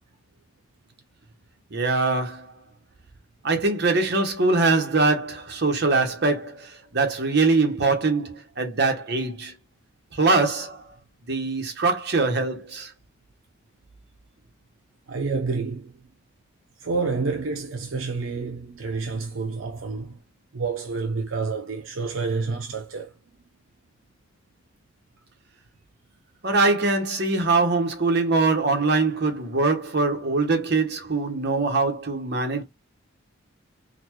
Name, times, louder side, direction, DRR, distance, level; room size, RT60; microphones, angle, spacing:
voice 1, 1.7-2.6 3.4-9.5 10.1-10.9 11.3-12.9 26.4-32.6, right 3 dB, 55° right, 0.9 m, -23 dB
voice 2, 15.1-15.9 16.8-20.2 20.5-23.1, right 4 dB, 75° right, 0.5 m, -29 dB
3.9 x 2.1 x 3.0 m
head